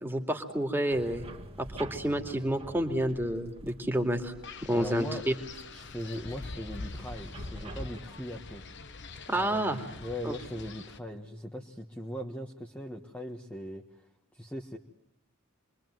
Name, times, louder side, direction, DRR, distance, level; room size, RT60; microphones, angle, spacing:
voice 1, 0.0-1.2 1.6-4.3 4.6-5.3 9.3-9.8 10.2-10.3, right 1 dB, 10° right, 3 dB, 2.5 m, -29 dB
sound 1, 0.9-8.2, right 2 dB, 25° right, 2.1 m, -48 dB
Wind, 4.4-11.0, left 3 dB, 55° left, 1.3 m, -44 dB
voice 2, 4.7-5.2 5.7-8.6 9.3-14.1 14.3-14.8, equal, 5° left, 0 dB, 1.4 m, -39 dB
28.0 x 23.0 x 9.2 m, 0.85 s
head